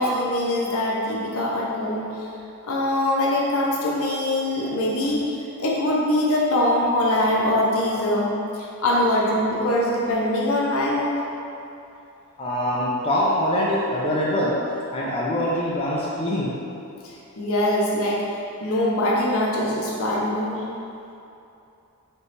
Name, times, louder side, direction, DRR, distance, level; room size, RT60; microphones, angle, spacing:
voice 1, 0.0-2.2 2.6-5.2 5.6-11.2 17.0-18.2 18.6-20.7, left 1 dB, 70° left, -4 dB, 0.7 m, -23 dB
voice 2, 12.4-14.5 14.9-16.5, left 1 dB, 25° left, -7 dB, 0.5 m, -23 dB
4.3 x 3.0 x 3.3 m, 2.8 s
head